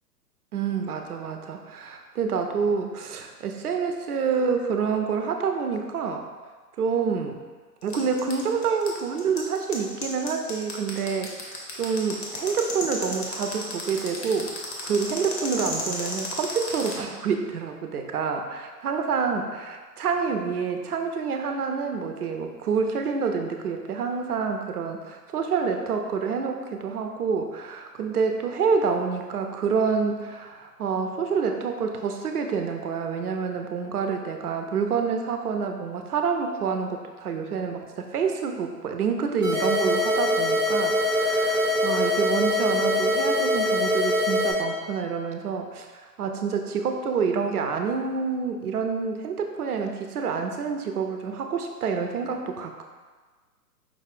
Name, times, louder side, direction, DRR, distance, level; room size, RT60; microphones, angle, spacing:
voice 1, 0.5-6.3 6.8-7.4 7.8-45.9 46.2-52.8, right 5 dB, 65° right, 5 dB, 0.6 m, -27 dB
sound 1, 7.8-16.9, left 3 dB, 40° left, 0.9 m, -33 dB
sound 2, 39.4-44.5, left 1 dB, 15° right, 0.4 m, -23 dB
5.1 x 2.4 x 3.6 m, 1.4 s
figure-of-eight pair, 125°, 49 cm